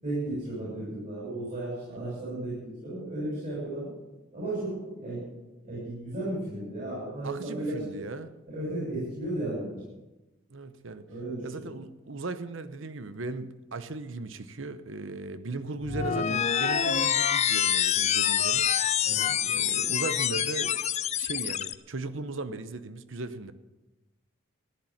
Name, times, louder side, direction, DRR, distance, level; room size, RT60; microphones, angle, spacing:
voice 1, 0.0-2.6 2.8-3.9 4.3-5.3 5.6-8.0 8.5-9.8 11.1-11.7 19.0-19.2, right 1 dB, 40° right, -7 dB, 6.6 m, -34 dB
voice 2, 7.2-8.3 10.5-11.1 11.4-18.7 19.4-20.8 21.2-23.5, right 3 dB, 65° right, 12 dB, 0.8 m, -37 dB
sound 1, 15.8-21.7, left 9 dB, 35° left, 0.4 m, -26 dB
15.0 x 10.5 x 7.3 m, 1.1 s
head